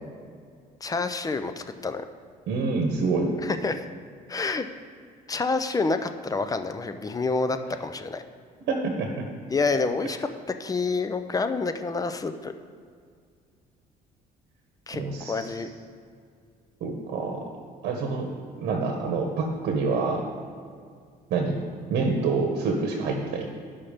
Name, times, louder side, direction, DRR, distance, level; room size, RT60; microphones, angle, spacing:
voice 1, 0.8-2.0 3.4-3.9 4.3-4.7 5.3-8.2 9.5-10.3 10.6-12.5 14.9-15.0 15.3-15.7, left 3 dB, 20° left, 9 dB, 0.6 m, -28 dB
voice 2, 2.5-3.3 8.7-9.1 14.9-15.5 16.8-17.5 17.8-18.3 18.6-20.2 21.3-21.6 21.9-23.5, right 4 dB, 75° right, 2 dB, 1.2 m, -26 dB
12.0 x 5.7 x 5.1 m, 2.1 s
cardioid pair, 110°, 17 cm